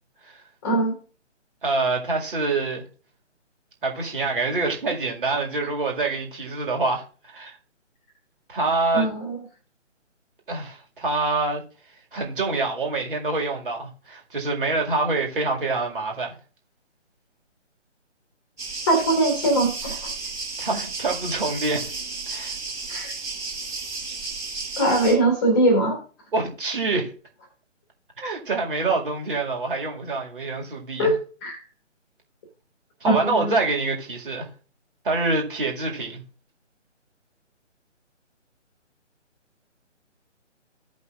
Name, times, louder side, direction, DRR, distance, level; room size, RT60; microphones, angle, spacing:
voice 1, 0.6-1.0 8.9-9.4 18.9-20.1 22.9-23.2 24.8-26.0 31.0-31.1 31.4-31.6 33.0-33.5, right 1 dB, 15° left, 1.5 m, -21 dB
voice 2, 1.6-2.8 3.8-7.0 7.3-7.5 8.5-9.1 10.5-11.6 12.1-16.4 20.6-21.9 22.3-22.6 26.3-27.1 28.2-31.1 33.0-34.5 35.0-36.2, right 3 dB, 45° right, 2.2 m, -26 dB
sound 1, 18.6-25.1, right 4 dB, 10° right, 2.0 m, -33 dB
15.0 x 5.3 x 2.5 m
figure-of-eight pair, 145°, 37 cm